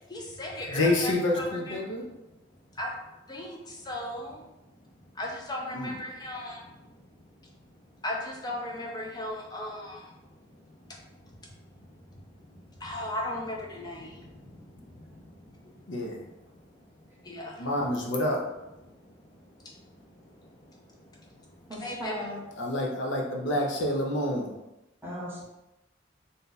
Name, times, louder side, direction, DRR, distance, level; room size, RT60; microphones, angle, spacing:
voice 1, 0.1-1.8 2.8-2.9 3.3-4.4 5.1-6.9 8.0-10.1 10.9-11.2 11.8-15.8 16.5-16.6 17.2-17.7 18.8-22.1, left 1 dB, 20° left, -1 dB, 0.6 m, -38 dB
voice 2, 0.7-2.0 5.7-5.9 15.9-16.2 17.6-18.4 22.6-24.5, left 1 dB, 70° left, 0 dB, 0.6 m, -28 dB
voice 3, 21.7-22.4 25.0-25.4, equal, 10° right, -5 dB, 0.8 m, -37 dB
2.6 x 2.3 x 3.9 m, 0.95 s
head